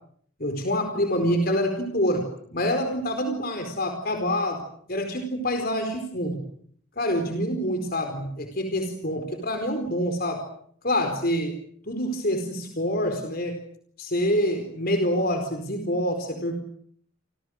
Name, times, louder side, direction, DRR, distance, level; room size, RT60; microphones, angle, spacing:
voice 1, 0.4-4.6 4.9-6.4 7.0-10.4 10.8-11.5 11.9-13.6 14.0-16.5, equal, 50° left, 6 dB, 4.5 m, -26 dB
29.5 x 27.5 x 6.6 m, 0.62 s
head